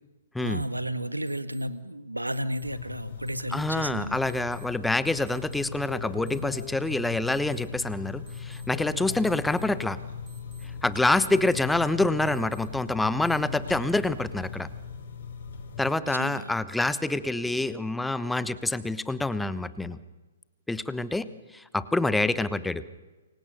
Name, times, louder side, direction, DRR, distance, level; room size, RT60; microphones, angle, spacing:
voice 1, 0.4-4.2 16.1-16.5, right 1 dB, 85° right, 12 dB, 1.7 m, -33 dB
sound 1, 0.6-0.7 1.3-1.6 2.3-2.6 3.3-3.6 4.3-4.6 5.3-5.6 6.3-6.6 7.3-7.6 8.3-8.6 9.3-9.6 10.3-10.6 11.3-11.6 12.3-12.6 13.3-13.4, right 5 dB, 10° right, 4.6 m, -56 dB
sound 2, 2.6-15.9, left 6 dB, 55° left, 5.9 m, -39 dB
voice 2, 3.5-10.0 10.8-14.7 15.8-20.0 20.7-21.3 21.5-22.8, left 2 dB, 5° left, 15 dB, 1.1 m, -27 dB
28.5 x 24.0 x 6.8 m, 1.2 s
figure-of-eight pair, 120°, 0 cm